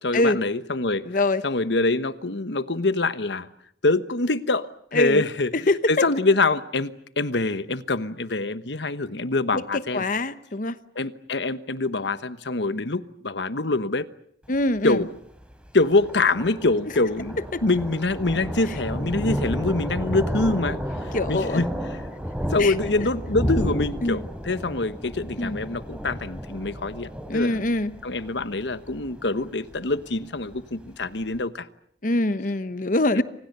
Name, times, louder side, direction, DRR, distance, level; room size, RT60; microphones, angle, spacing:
voice 1, 0.0-1.1 1.4-3.5 3.8-10.0 10.9-14.1 14.8-15.1 15.7-22.0 22.5-27.6 28.0-31.7 33.1-33.2, left 2 dB, 75° left, 1.2 m, -25 dB
voice 2, 1.1-1.4 4.9-5.2 5.7-6.1 9.5-10.8 14.5-15.0 17.5-17.6 21.1-21.6 22.6-22.7 24.0-24.2 25.4-25.6 27.3-27.9 32.0-33.2, left 2 dB, 50° left, 1.0 m, -23 dB
Thunder, 14.4-31.4, equal, 5° right, 4.4 m, -32 dB
29.5 x 25.0 x 6.8 m
head